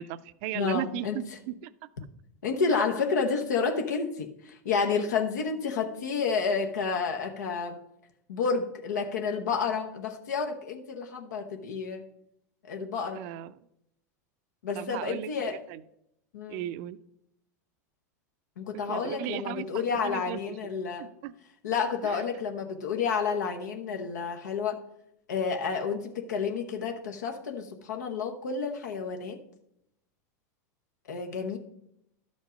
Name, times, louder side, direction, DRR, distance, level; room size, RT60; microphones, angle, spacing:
voice 1, 0.0-1.7 2.7-2.9 13.1-13.6 14.7-15.8 16.5-17.0 18.9-20.6 21.0-21.3 22.0-22.2 22.7-22.9, right 12 dB, 55° right, 15 dB, 0.5 m, -37 dB
voice 2, 0.5-1.2 2.4-7.7 8.3-12.0 12.6-13.2 14.6-15.6 16.3-16.6 18.6-21.1 21.6-24.8 25.3-29.4 31.1-31.6, left 5 dB, 85° left, 4 dB, 1.0 m, -30 dB
11.5 x 5.3 x 5.0 m, 0.79 s
hypercardioid pair, 110°, 9 cm